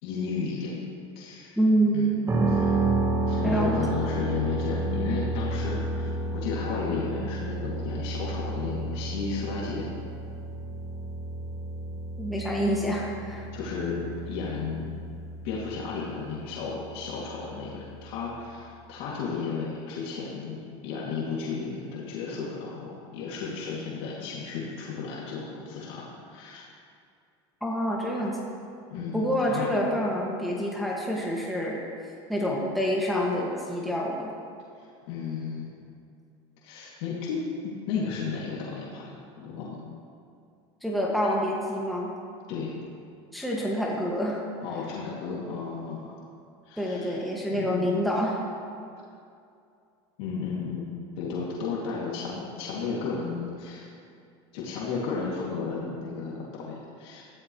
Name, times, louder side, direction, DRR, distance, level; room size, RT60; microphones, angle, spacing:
voice 1, 0.0-0.8 1.2-1.6 1.9-2.1 2.5-2.9 3.3-9.9 13.5-14.9 15.4-20.6 20.8-26.6 28.9-29.7 34.8-35.7 36.6-39.8 42.5-42.8 44.6-46.2 46.6-47.2 47.5-47.9 50.2-50.9 51.2-53.9 54.5-57.2, left 5 dB, 75° left, -5 dB, 2.6 m, -33 dB
voice 2, 1.6-2.2 3.4-3.8 12.2-13.5 27.6-28.4 29.1-31.8 32.3-34.3 40.8-42.1 43.3-44.4 46.8-48.4, equal, ahead, -4 dB, 2.0 m, -27 dB
sound 1, 2.3-18.1, right 2 dB, 20° right, 1.5 m, -31 dB
14.5 x 13.5 x 3.2 m, 2.4 s
supercardioid pair, 115°, 14 cm